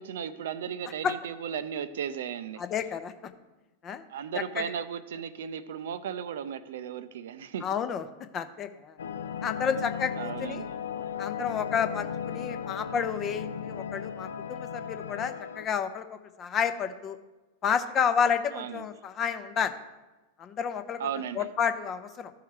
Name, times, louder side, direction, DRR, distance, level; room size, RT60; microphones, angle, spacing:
voice 1, 0.0-2.6 4.1-7.7 10.2-10.7 18.5-18.8 21.0-21.5, right 8 dB, 60° right, 12 dB, 0.5 m, -35 dB
voice 2, 2.6-3.1 3.8-4.0 4.6-4.7 7.6-8.0 8.3-9.0 9.4-10.7 11.2-17.2 17.6-19.8 20.4-21.0 21.3-22.3, left 7 dB, 30° left, 10 dB, 0.7 m, -30 dB
sound 1, 9.0-15.7, left 8 dB, 65° left, 0.4 m, -36 dB
14.0 x 5.7 x 3.2 m, 1.1 s
figure-of-eight pair, 90°, 0 cm